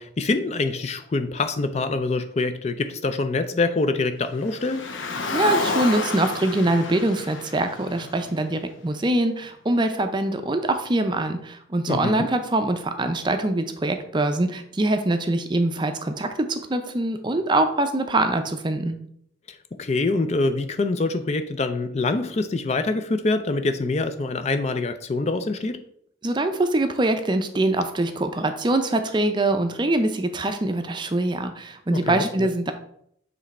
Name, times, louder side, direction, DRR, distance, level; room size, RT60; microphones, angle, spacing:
voice 1, 0.0-4.9 11.9-12.3 19.5-25.8 31.9-32.5, left 3 dB, 35° left, 9 dB, 0.4 m, -25 dB
Car, 4.4-8.8, left 3 dB, 80° left, 0.8 m, -30 dB
voice 2, 5.3-19.0 26.2-32.7, right 2 dB, 25° right, 7 dB, 0.5 m, -23 dB
7.2 x 3.3 x 4.2 m, 0.69 s
head